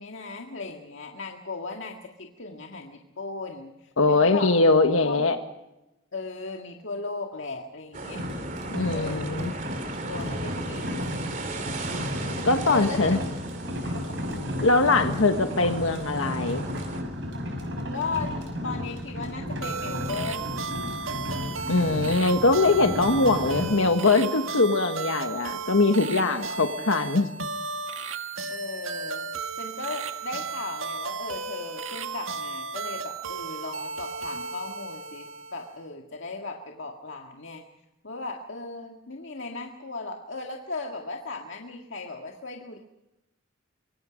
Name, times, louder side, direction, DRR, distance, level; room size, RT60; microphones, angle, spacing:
voice 1, 0.0-4.5 5.0-5.3 6.1-8.3 8.6-9.5 10.1-11.2 12.7-13.2 13.8-14.0 17.9-18.3 18.6-20.7 28.5-29.3 29.6-37.6 38.0-42.8, left 3 dB, 65° left, 1 dB, 1.9 m, -37 dB
voice 2, 4.0-5.4 8.7-9.5 12.4-13.2 14.6-16.7 21.7-27.3, left 3 dB, 80° left, 6 dB, 1.4 m, -22 dB
sound 1, 7.9-17.0, right 2 dB, 40° right, 3.1 m, -37 dB
sound 2, 8.1-23.7, left 1 dB, 60° right, 6.3 m, -33 dB
sound 3, 19.6-35.8, right 4 dB, 80° right, 1.6 m, -34 dB
24.5 x 24.0 x 5.2 m, 0.95 s
head